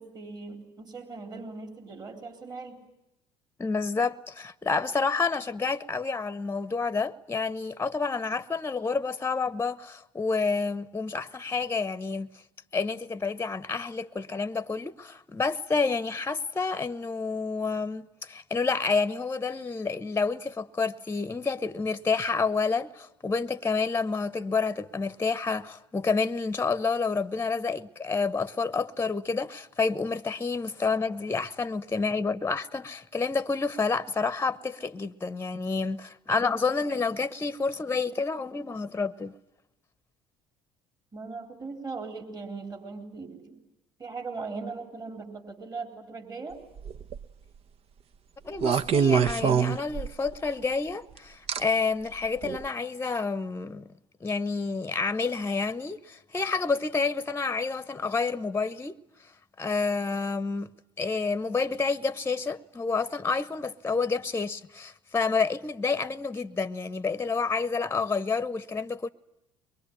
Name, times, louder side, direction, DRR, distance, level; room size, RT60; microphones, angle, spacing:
voice 1, 0.0-2.8 41.1-43.6 44.0-46.6, right 4 dB, 30° right, 3.9 m, -39 dB
voice 2, 3.6-12.3 12.7-39.3 48.4-53.9 54.2-59.0 59.6-60.7 61.0-69.1, left 4 dB, 20° left, 1.0 m, -29 dB
sound 1, 46.8-47.2 48.6-50.4 51.5-51.6 52.4-52.6, right 7 dB, 50° right, 1.0 m, -24 dB
23.5 x 23.0 x 10.0 m
hypercardioid pair, 60°, 13 cm